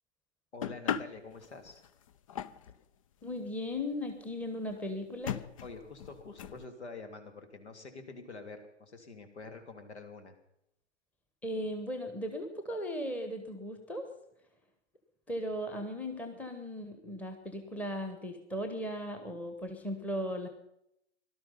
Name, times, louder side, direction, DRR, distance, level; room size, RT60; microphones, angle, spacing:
voice 1, 0.5-1.8 5.6-10.3, left 3 dB, 65° left, 7 dB, 3.1 m, -47 dB
sound 1, 0.6-2.8 3.5-3.6 3.8-3.9 4.1-4.2 4.7-4.8 5.2-6.7, left 9 dB, 30° left, 0.5 m, -38 dB
voice 2, 3.2-5.4 11.4-14.0 15.3-20.5, equal, 5° left, 5 dB, 1.3 m, -37 dB
18.5 x 12.5 x 5.6 m, 0.79 s
figure-of-eight pair, 115°, 36 cm